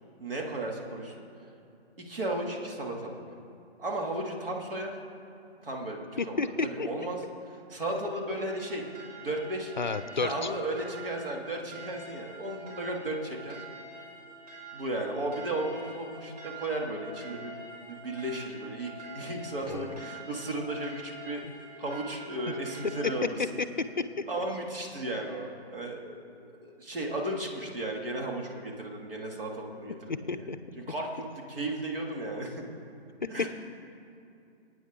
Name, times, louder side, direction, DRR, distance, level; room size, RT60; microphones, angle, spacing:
voice 1, 0.2-1.1 2.0-3.2 3.8-4.9 5.6-9.7 10.2-13.6 14.7-21.4 21.8-23.4 24.3-30.5 30.8-32.6 33.3-33.5, right 1 dB, 55° right, 0 dB, 2.7 m, -35 dB
voice 2, 6.2-6.9 9.8-10.5 19.7-20.0 30.3-30.6, left 4 dB, 45° left, 11 dB, 0.6 m, -31 dB
sound 1, 8.5-23.3, right 2 dB, 35° right, 3.1 m, -46 dB
26.0 x 9.3 x 3.8 m, 2.6 s
hypercardioid pair, 170°, 32 cm